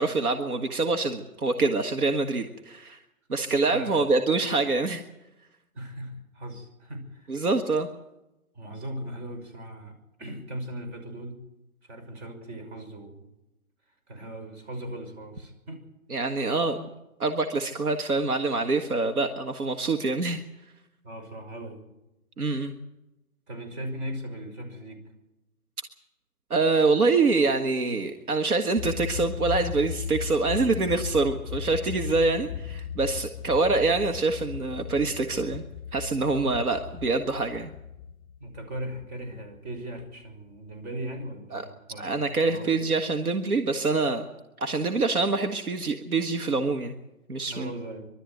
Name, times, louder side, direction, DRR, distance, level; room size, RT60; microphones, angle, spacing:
voice 1, 0.0-3.0 3.3-5.0 7.3-7.9 16.1-16.9 17.2-20.4 22.4-22.7 26.5-35.6 35.9-37.7 41.5-41.6 42.0-44.3 44.6-46.9 47.3-47.7, right 3 dB, 90° right, 6 dB, 1.8 m, -25 dB
voice 2, 5.7-7.5 8.5-11.4 11.8-13.3 14.1-15.8 21.0-21.8 23.5-25.1 38.4-42.8 47.5-48.0, right 1 dB, 50° right, 5 dB, 5.9 m, -38 dB
sound 1, 28.8-40.0, left 8 dB, 25° left, 1.0 m, -36 dB
24.0 x 12.5 x 9.4 m, 0.93 s
hypercardioid pair, 150°, 43 cm